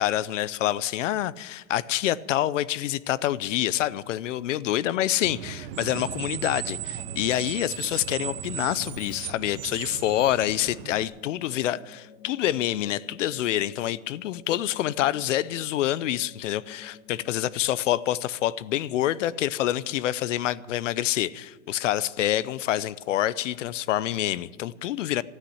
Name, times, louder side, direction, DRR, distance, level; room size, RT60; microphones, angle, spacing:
voice 1, 0.0-25.2, left 13 dB, 65° left, 0.7 m, -27 dB
Screech, 5.2-11.0, right 11 dB, 45° right, 1.0 m, -36 dB
sound 1, 7.0-17.3, left 5 dB, 45° left, 1.8 m, -52 dB
13.0 x 9.1 x 9.9 m
supercardioid pair, 150°, 41 cm